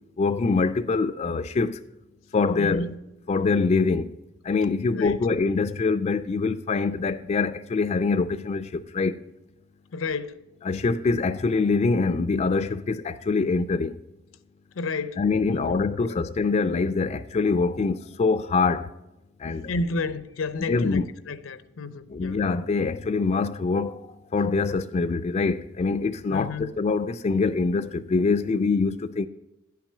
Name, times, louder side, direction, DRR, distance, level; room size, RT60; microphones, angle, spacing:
voice 1, 0.2-1.8 2.3-2.9 3.3-4.2 4.4-9.2 10.7-14.0 15.2-18.9 19.4-19.7 20.7-21.1 22.1-29.3, left 4 dB, 35° left, 0.3 m, -24 dB
voice 2, 2.6-2.9 4.9-5.2 9.9-10.4 14.8-15.2 15.5-16.2 19.7-22.4 26.3-26.7, left 3 dB, 85° left, 0.6 m, -31 dB
10.0 x 5.9 x 5.5 m
head